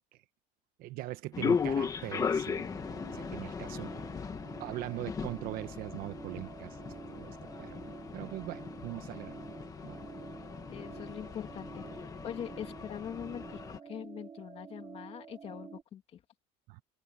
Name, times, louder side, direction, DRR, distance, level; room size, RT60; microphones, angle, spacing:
voice 1, 0.8-3.9 4.6-6.8 7.1-7.8 8.1-9.4 9.8-10.0 16.7-16.8, right 16 dB, 55° right, 1.0 m, -41 dB
sound 1, 1.3-13.8, left 6 dB, 20° left, 1.4 m, -37 dB
sound 2, 2.5-15.8, right 6 dB, 25° right, 2.5 m, -49 dB
voice 2, 10.7-16.2, left 9 dB, 35° left, 2.6 m, -43 dB
open air
cardioid pair, 180°, 18 cm